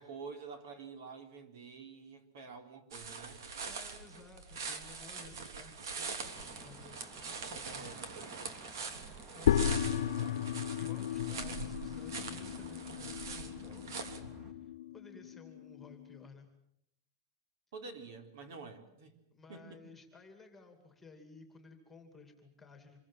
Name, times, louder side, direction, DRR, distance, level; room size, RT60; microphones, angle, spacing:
voice 1, 0.0-3.4 7.5-8.0 17.7-19.2 19.5-19.8, right 4 dB, 50° right, 7 dB, 3.8 m, -48 dB
sound 1, 2.9-14.2, right 5 dB, 75° right, 3.3 m, -43 dB
voice 2, 3.6-8.1 9.3-10.0 10.8-14.0 14.5-16.5 19.3-23.0, left 4 dB, 5° left, 5 dB, 2.7 m, -56 dB
sound 2, 6.2-14.5, right 1 dB, 20° right, 3.1 m, -54 dB
sound 3, 9.5-16.2, left 9 dB, 75° left, 1.0 m, -35 dB
26.5 x 23.0 x 7.4 m, 0.75 s
supercardioid pair, 180°, 2 cm